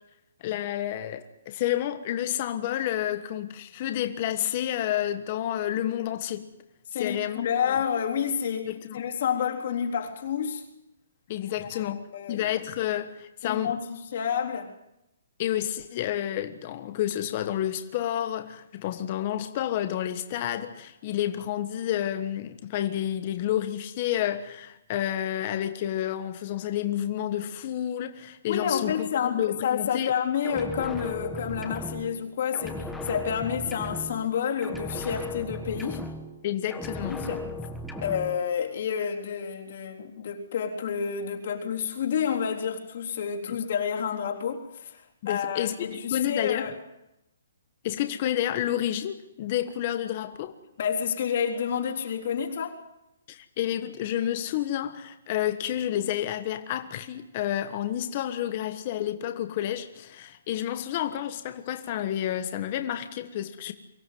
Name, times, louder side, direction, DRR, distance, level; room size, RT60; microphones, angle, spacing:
voice 1, 0.4-6.5 7.0-7.8 8.6-9.0 11.3-12.0 12.3-13.7 15.4-30.1 36.4-37.2 43.5-43.6 45.2-46.7 47.8-50.5 53.3-63.7, left 11 dB, 30° left, 1.4 m, -30 dB
voice 2, 6.9-10.7 11.6-12.5 13.4-14.7 28.5-36.1 37.1-37.4 38.0-46.8 50.8-52.8, left 7 dB, 45° left, 3.7 m, -29 dB
sound 1, 30.4-32.3 32.5-34.4 34.6-36.4 36.7-38.4, left 1 dB, ahead, 1.6 m, -36 dB
24.5 x 16.5 x 9.4 m
hypercardioid pair, 175°, 0 cm